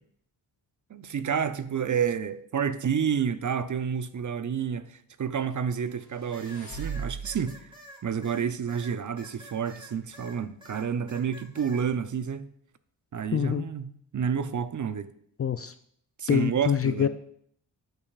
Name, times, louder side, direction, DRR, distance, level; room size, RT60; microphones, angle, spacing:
voice 1, 0.9-7.7 8.0-12.5 13.1-15.1 16.2-17.1, right 7 dB, 45° right, 0.6 m, -29 dB
sound 1, 5.9-7.6, right 6 dB, 55° left, 2.5 m, -38 dB
sound 2, 6.3-10.4 10.6-11.8, right 1 dB, 10° right, 2.1 m, -48 dB
voice 2, 13.3-13.6 15.4-15.7 16.3-17.1, left 8 dB, 35° left, 0.4 m, -25 dB
12.0 x 5.5 x 2.4 m
cardioid pair, 50°, 45 cm